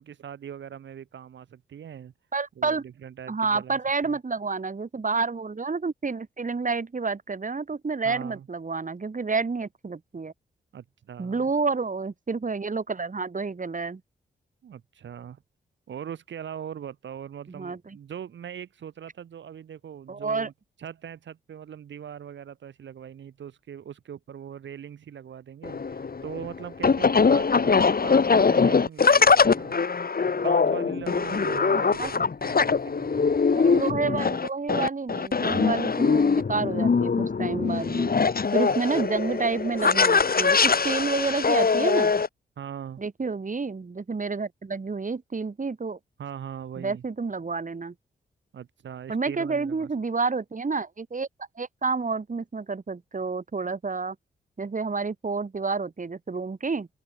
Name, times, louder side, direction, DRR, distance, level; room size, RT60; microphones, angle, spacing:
voice 1, 0.0-2.1 2.6-3.8 4.0-4.2 8.0-8.5 10.7-11.5 14.6-15.4 15.9-20.5 20.8-29.8 30.4-33.4 38.7-39.1 42.6-43.0 46.2-47.0 48.5-49.9, right 9 dB, 75° right, 4.2 m, -40 dB
voice 2, 2.3-2.8 3.3-10.3 11.2-14.0 17.5-18.0 20.1-20.5 31.7-32.1 33.5-38.1 38.5-42.1 43.0-46.0 46.8-47.9 49.1-51.3 51.6-54.2 54.6-56.9, right 4 dB, 45° right, 4.4 m, -29 dB
sound 1, 25.6-42.3, left 5 dB, 50° left, 4.5 m, -22 dB
open air
supercardioid pair, 40°, 19 cm